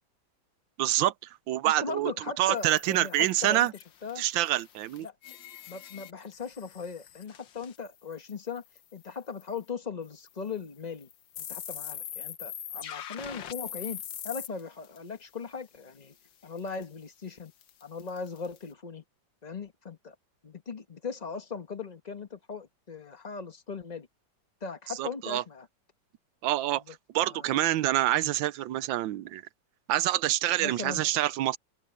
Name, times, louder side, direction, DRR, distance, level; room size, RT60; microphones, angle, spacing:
voice 1, 0.8-2.1 2.4-3.7 4.2-5.1 25.0-25.4 26.4-29.4 29.9-31.6, right 14 dB, 90° right, 1.4 m, -27 dB
voice 2, 1.6-3.7 4.0-4.2 5.0-5.1 5.7-8.6 8.9-11.1 11.4-16.1 16.4-17.5 17.8-19.0 19.4-20.1 20.4-24.1 24.6-25.7 26.9-27.0 27.2-28.0 30.6-31.0, left 5 dB, 25° left, 1.1 m, -39 dB
sound 1, 2.6-8.8 9.0-9.1 9.4-9.6 10.3-10.4 11.0-15.0 16.6-16.8 17.6-18.6, left 10 dB, 80° left, 1.8 m, -43 dB
open air
omnidirectional pair, 2.0 m